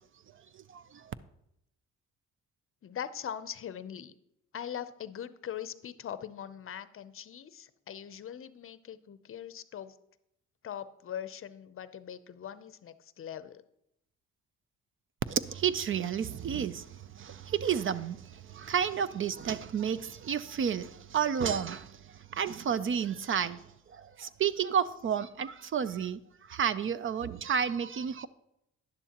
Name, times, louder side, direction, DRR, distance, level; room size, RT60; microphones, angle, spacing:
voice 1, 2.8-4.1 4.5-9.9 10.6-13.6, left 9 dB, 45° left, 0.6 m, -41 dB
voice 2, 15.3-16.9 17.2-18.2 18.5-21.9 22.3-23.6 24.2-26.2 26.5-28.3, right 8 dB, 45° right, 0.5 m, -31 dB
11.0 x 11.0 x 2.9 m
cardioid pair, 90°, 30 cm